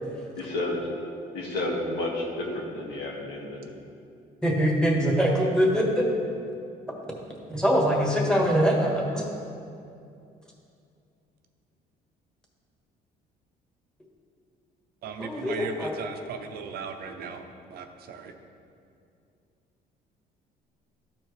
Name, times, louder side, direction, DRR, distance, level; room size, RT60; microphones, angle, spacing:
voice 1, 0.4-0.8 1.3-3.7, left 2 dB, 85° left, -2 dB, 1.7 m, -31 dB
voice 2, 4.4-6.0 7.5-9.2 15.2-15.9, equal, 5° left, -2 dB, 1.5 m, -23 dB
voice 3, 15.0-17.4 17.7-18.3, right 6 dB, 65° right, 5 dB, 0.7 m, -37 dB
13.5 x 4.5 x 3.3 m, 2.5 s
cardioid pair, 110°, 17 cm